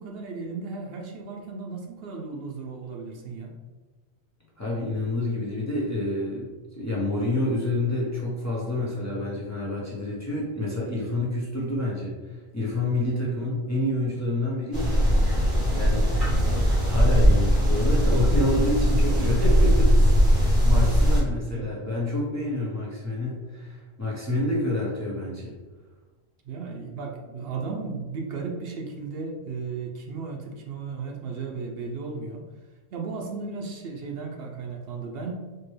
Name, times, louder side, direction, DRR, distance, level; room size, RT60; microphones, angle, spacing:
voice 1, 0.0-3.5 16.2-16.5 19.2-19.5 21.5-21.7 24.3-24.6 26.4-32.4 32.9-35.3, right 4 dB, 70° right, 1 dB, 0.7 m, -35 dB
voice 2, 4.6-14.9 15.7-16.5 16.8-25.5, left 2 dB, 20° left, -6 dB, 0.6 m, -28 dB
sound 1, 14.7-21.2, equal, 50° right, 1.4 m, -20 dB
4.3 x 2.1 x 3.2 m, 1.3 s
omnidirectional pair, 1.1 m